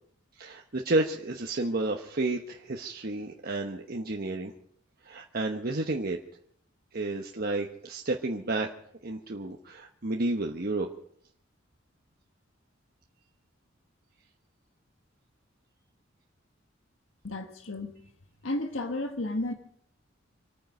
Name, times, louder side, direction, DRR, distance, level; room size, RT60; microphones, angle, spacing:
voice 1, 0.4-4.5 5.0-6.2 6.9-8.7 9.0-10.9, right 2 dB, 50° right, 1 dB, 1.1 m, -31 dB
voice 2, 17.2-17.9 18.4-19.5, left 1 dB, 80° left, 6 dB, 1.4 m, -32 dB
26.5 x 9.4 x 5.3 m, 0.64 s
head